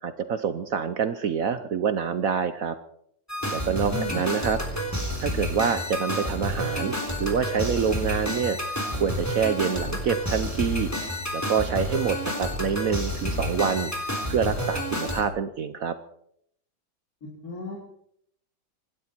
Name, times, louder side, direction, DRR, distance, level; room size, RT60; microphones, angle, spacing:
voice 1, 0.0-2.8 3.5-4.6 5.2-6.9 7.2-8.6 8.9-10.9 11.3-13.9 14.3-16.0, right 7 dB, 60° right, 11 dB, 1.1 m, -26 dB
sound 1, 3.3-15.2, equal, 10° left, 3.4 m, -29 dB
voice 2, 3.8-4.2 17.2-17.8, left 4 dB, 55° left, -4 dB, 3.9 m, -35 dB
26.0 x 12.5 x 4.4 m, 0.70 s
omnidirectional pair, 1.8 m